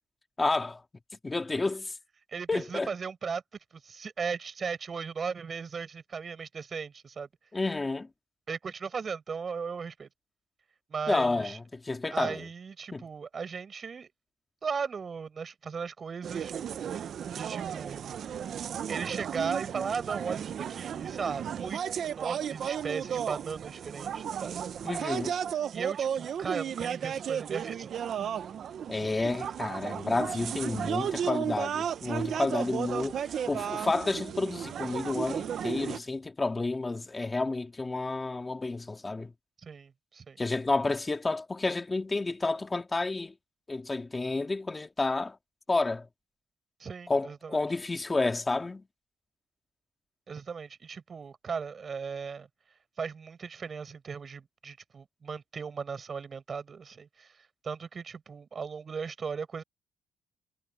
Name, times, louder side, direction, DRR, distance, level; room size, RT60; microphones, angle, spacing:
voice 1, 0.4-0.8 1.2-2.0 2.5-2.9 7.5-8.1 11.1-12.5 12.9-13.0 24.8-25.3 28.9-39.3 40.4-43.3 43.7-45.4 45.7-46.1 47.1-48.8, left 3 dB, 20° left, 2.2 m, -30 dB
voice 2, 2.3-3.4 3.8-7.3 8.5-10.1 10.9-11.6 12.1-14.1 14.6-16.5 17.4-18.1 18.9-21.8 22.1-24.7 25.7-27.9 39.6-40.4 46.8-47.6 50.3-52.5 53.0-57.3 57.6-59.6, right 5 dB, 40° right, 6.5 m, -37 dB
sound 1, 16.2-36.0, right 8 dB, 55° right, 0.7 m, -34 dB
cardioid pair, 120°, 0 cm